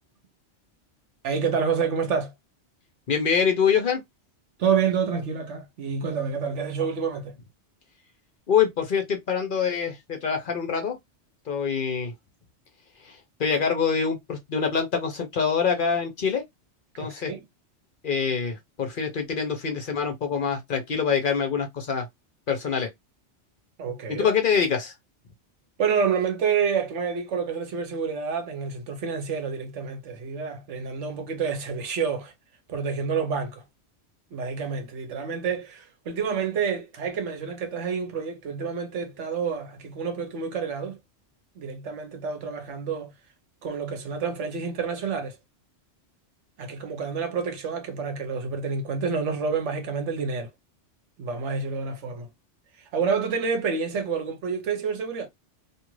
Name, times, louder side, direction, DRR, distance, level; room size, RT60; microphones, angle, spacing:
voice 1, 1.2-2.3 4.6-7.4 16.9-17.4 23.8-24.3 25.8-32.3 32.7-33.6 34.3-41.0 41.6-43.1 43.6-45.4 46.6-50.5 51.2-52.3 52.8-55.3, right 6 dB, 80° right, 1.1 m, -28 dB
voice 2, 3.1-4.0 8.5-11.0 11.5-12.1 13.0-16.4 17.0-17.3 18.0-22.1 22.5-22.9 24.1-24.9, left 6 dB, 50° left, 0.8 m, -25 dB
2.5 x 2.5 x 3.0 m
omnidirectional pair, 1.2 m